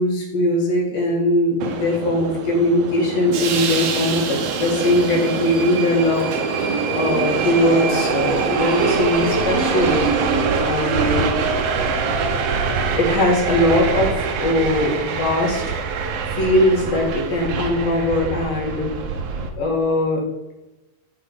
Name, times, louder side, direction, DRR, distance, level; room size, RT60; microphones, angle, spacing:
voice 1, 0.0-6.3 6.9-10.1 10.6-11.3 13.0-15.6 16.3-18.9 19.6-20.2, left 1 dB, 75° left, -2 dB, 3.9 m, -20 dB
Subway metro underground, 1.6-19.5, right 5 dB, 80° right, 1.4 m, -24 dB
12.5 x 4.5 x 5.6 m, 1.0 s
omnidirectional pair, 4.2 m